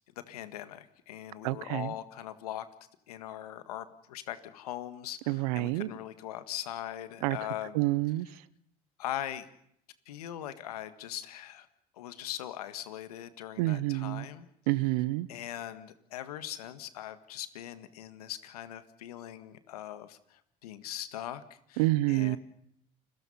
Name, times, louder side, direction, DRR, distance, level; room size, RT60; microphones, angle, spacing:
voice 1, 0.3-2.7 3.1-7.8 9.0-9.5 10.0-11.7 12.0-14.5 15.3-21.4 21.7-22.4, left 12 dB, 90° left, 1.7 m, -40 dB
voice 2, 1.4-1.9 5.3-5.9 7.2-7.4 7.7-8.3 13.6-14.3 14.7-15.3 21.8-22.4, right 19 dB, 80° right, 0.9 m, -28 dB
29.5 x 22.0 x 5.6 m
hypercardioid pair, 65°, 19 cm